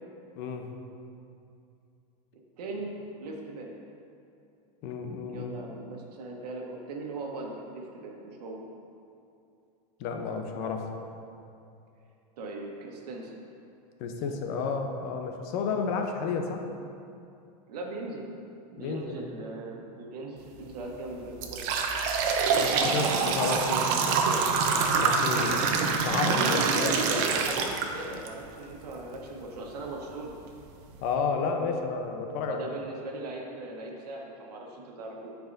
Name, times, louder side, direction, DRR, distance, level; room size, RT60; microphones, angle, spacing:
voice 1, 0.4-0.7 4.8-5.5 10.0-10.9 14.0-16.6 18.8-19.2 22.6-23.7 24.7-25.6 25.8-26.9 31.0-32.6, left 5 dB, 50° left, 4 dB, 0.8 m, -31 dB
voice 2, 2.6-3.7 5.3-8.6 12.4-13.3 17.7-18.3 18.7-21.8 23.0-24.4 25.3-25.6 26.7-30.4 32.5-35.3, right 2 dB, 85° right, 0 dB, 1.3 m, -39 dB
sound 1, 20.5-20.6 21.1-28.3 28.7-28.8 29.7-29.8 30.3-30.4 30.8-31.1, right 5 dB, 55° right, 0.8 m, -26 dB
12.5 x 4.8 x 2.7 m, 2.6 s
supercardioid pair, 130°, 20 cm